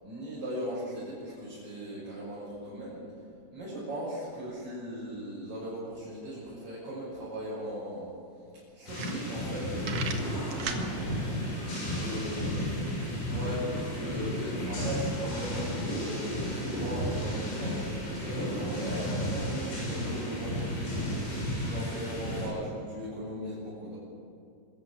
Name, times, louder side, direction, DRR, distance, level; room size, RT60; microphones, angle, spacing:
voice 1, 0.0-3.0 3.5-8.1 8.7-11.2 11.7-12.7 13.2-24.0, equal, 30° right, -10 dB, 7.1 m, -38 dB
Pistol reload, 7.5-7.6 7.9-8.0 8.5-8.6 8.9-9.5 9.8-10.9, right 6 dB, 60° right, 1.8 m, -36 dB
sound 1, 8.9-22.5, equal, 75° left, 9.8 m, -33 dB
24.0 x 14.0 x 9.0 m, 2.5 s
omnidirectional pair, 5.4 m